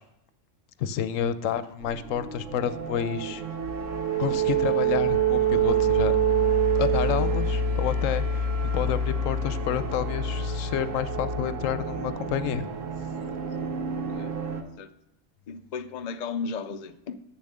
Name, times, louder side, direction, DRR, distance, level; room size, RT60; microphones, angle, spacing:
voice 1, 0.8-3.4 4.2-6.1 6.7-12.7, left 9 dB, 85° left, 1.0 m, -29 dB
sound 1, 1.8-14.6, right 4 dB, 80° right, 1.2 m, -27 dB
voice 2, 13.9-14.3 14.8-14.9 15.5-17.2, left 5 dB, 55° left, 0.5 m, -35 dB
7.6 x 7.0 x 6.6 m
omnidirectional pair, 1.3 m